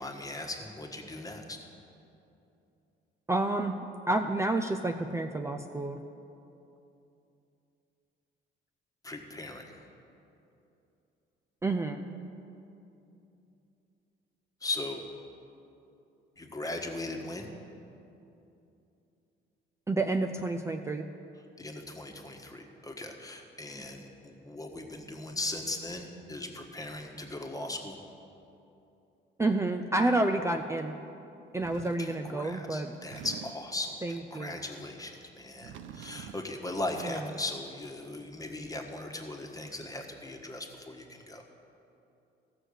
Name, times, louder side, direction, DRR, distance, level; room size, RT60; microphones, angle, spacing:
voice 1, 0.0-1.6 9.0-9.8 14.6-15.0 16.4-17.5 21.6-28.0 32.0-41.4, left 2 dB, 15° left, 2 dB, 1.4 m, -38 dB
voice 2, 3.3-3.8 4.1-6.0 11.6-12.0 19.9-21.1 29.4-31.0 31.5-32.9 34.0-34.6 37.0-37.3, right 2 dB, 15° right, 6 dB, 0.5 m, -29 dB
sound 1, 31.6-32.1 32.9-33.8 35.4-36.6, right 8 dB, 75° right, 0.5 m, -46 dB
14.5 x 6.4 x 6.5 m, 2.8 s
cardioid pair, 90°, 20 cm